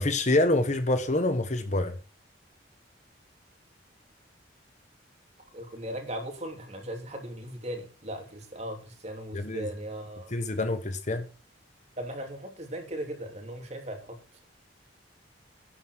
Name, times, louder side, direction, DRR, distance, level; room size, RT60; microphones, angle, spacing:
voice 1, 0.0-1.9 9.3-9.7 10.3-11.3, left 2 dB, 35° left, 1.0 m, -26 dB
voice 2, 5.4-10.3 12.0-14.2, right 1 dB, 35° right, 3.2 m, -38 dB
11.5 x 9.5 x 4.7 m
head